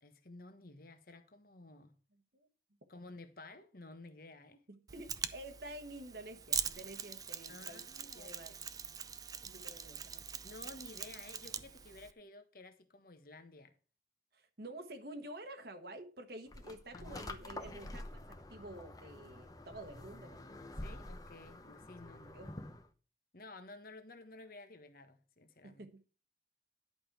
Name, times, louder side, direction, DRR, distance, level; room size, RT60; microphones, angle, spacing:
voice 1, 0.0-1.9 2.9-4.6 7.5-8.6 10.4-13.8 16.9-18.1 20.8-22.5 23.3-25.9, left 2 dB, 55° left, 1.3 m, -54 dB
voice 2, 4.7-7.9 8.1-8.5 9.4-10.5 14.3-20.4 22.1-22.5 25.6-26.2, right 1 dB, 60° right, 1.2 m, -50 dB
Mechanisms, 4.9-12.1, right 7 dB, 20° right, 0.5 m, -42 dB
sound 1, 16.5-22.9, left 1 dB, 20° left, 0.8 m, -48 dB
11.0 x 5.4 x 5.9 m
head